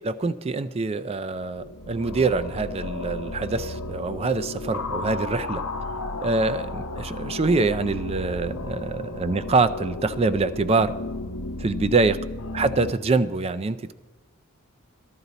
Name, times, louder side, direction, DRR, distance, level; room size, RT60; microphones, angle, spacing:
voice 1, 0.0-5.6 6.2-10.9 11.6-12.2 12.5-13.9, right 3 dB, 30° right, 14 dB, 0.4 m, -25 dB
sound 1, 1.4-12.9, left 2 dB, 80° left, 0.8 m, -33 dB
14.0 x 11.0 x 4.0 m, 1.3 s
head